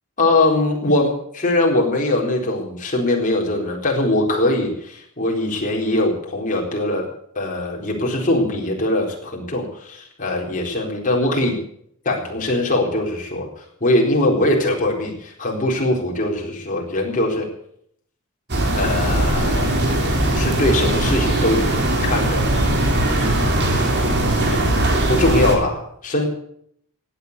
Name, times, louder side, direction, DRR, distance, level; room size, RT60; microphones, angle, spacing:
voice 1, 0.2-7.1 7.4-11.6 12.0-13.5 13.8-17.5 18.8-19.8 20.3-22.5 24.4-24.6 25.1-26.3, left 1 dB, 35° left, -1 dB, 4.1 m, -21 dB
sound 1, 18.5-25.5, right 1 dB, 50° right, 3.5 m, -19 dB
16.0 x 9.7 x 8.1 m, 0.68 s
head